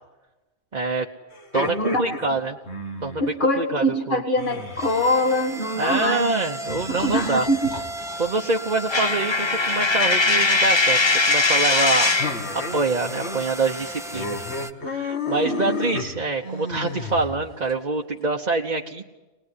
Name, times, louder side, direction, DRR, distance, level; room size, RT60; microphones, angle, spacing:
voice 1, 0.7-1.1 1.5-2.6 3.0-4.2 5.8-7.5 8.2-12.1 12.5-14.4 14.8-19.0, right 3 dB, 40° right, 0 dB, 1.2 m, -25 dB
sound 1, 1.3-3.3 4.4-5.8 6.7-8.3 9.9-10.4 12.2-13.4 13.7-13.8 14.1-17.7, left 3 dB, 75° left, 2.2 m, -32 dB
voice 2, 1.6-2.2 3.2-6.3 6.9-7.7 15.4-15.8, left 1 dB, 45° left, 5 dB, 2.1 m, -24 dB
sound 2, 4.4-14.7, equal, 5° right, 0.9 m, -35 dB
Coin (dropping), 8.9-12.4, left 3 dB, 25° left, 0.8 m, -20 dB
25.0 x 20.0 x 9.8 m, 1.1 s
omnidirectional pair, 1.1 m